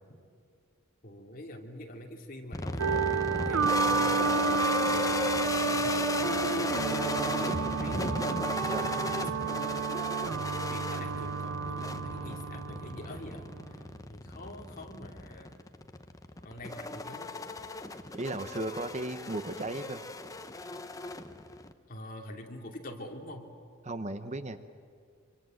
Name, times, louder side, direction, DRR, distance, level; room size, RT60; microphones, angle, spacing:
voice 1, 1.0-4.3 4.8-15.6 16.4-17.4 21.9-23.4, left 1 dB, 40° left, 1 dB, 2.8 m, -46 dB
sound 1, 2.5-21.7, left 2 dB, 15° left, 0.9 m, -36 dB
sound 2, 2.8-13.8, right 5 dB, 75° right, 0.6 m, -31 dB
voice 2, 8.7-9.2 18.1-20.0 23.8-24.7, right 2 dB, 30° right, 10 dB, 0.8 m, -36 dB
25.5 x 25.5 x 7.8 m, 2.4 s
head